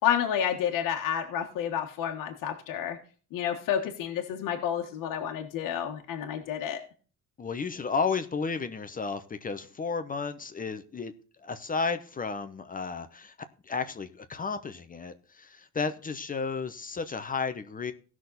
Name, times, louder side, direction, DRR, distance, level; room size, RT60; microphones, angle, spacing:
voice 1, 0.0-3.0 3.3-6.8, left 9 dB, 80° left, 2 dB, 1.5 m, -30 dB
voice 2, 7.4-11.1 11.4-13.3 13.7-17.9, left 5 dB, 25° left, 9 dB, 0.8 m, -33 dB
16.0 x 6.2 x 4.0 m, 0.39 s
cardioid pair, 120°, 32 cm